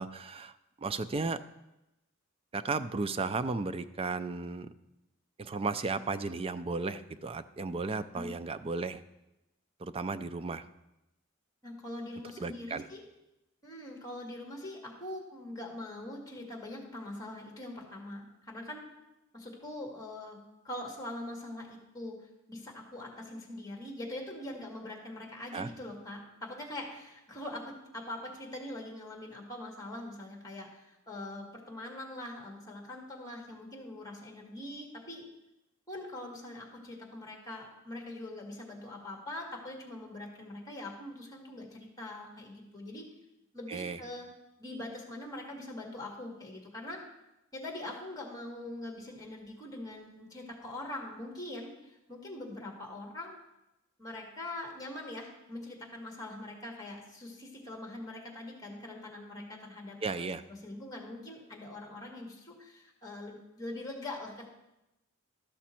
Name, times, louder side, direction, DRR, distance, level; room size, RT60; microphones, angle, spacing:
voice 1, 0.0-1.4 2.5-4.7 5.4-9.0 9.8-10.7 12.4-12.9 25.5-25.7 43.7-44.0 60.0-60.4, right 4 dB, 25° right, 11 dB, 0.4 m, -34 dB
voice 2, 11.6-13.0 13.6-18.9 19.3-20.4 20.6-35.2 35.9-43.1 43.5-44.3 44.6-47.0 47.5-53.4 54.0-60.3 60.6-64.5, left 1 dB, 20° left, 0 dB, 1.8 m, -43 dB
13.0 x 6.1 x 4.3 m, 0.91 s
head